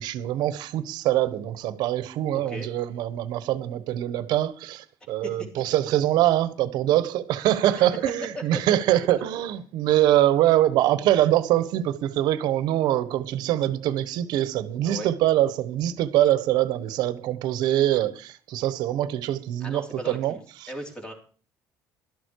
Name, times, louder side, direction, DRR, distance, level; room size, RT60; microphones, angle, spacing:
voice 1, 0.0-20.7, right 13 dB, 60° right, 1.3 m, -24 dB
voice 2, 2.3-2.7 5.2-5.4 8.3-8.6 14.8-15.1 19.6-20.4 20.7-21.1, right 1 dB, 10° left, 3.4 m, -37 dB
12.5 x 11.5 x 4.8 m
cardioid pair, 170°, 8 cm